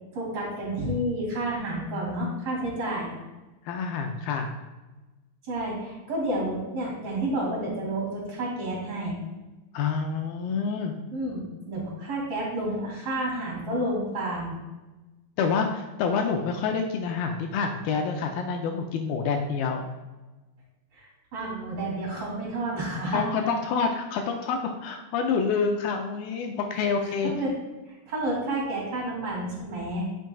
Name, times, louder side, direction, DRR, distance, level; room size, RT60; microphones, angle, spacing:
voice 1, 0.1-3.1 5.5-9.2 11.1-14.5 20.9-23.2 27.2-27.5 27.9-30.1, right 1 dB, 35° right, -3 dB, 2.8 m, -30 dB
voice 2, 3.7-4.5 9.7-10.9 15.4-19.9 23.1-27.3, left 5 dB, 80° left, 3 dB, 2.3 m, -27 dB
11.5 x 5.9 x 2.3 m, 1.1 s
omnidirectional pair, 4.5 m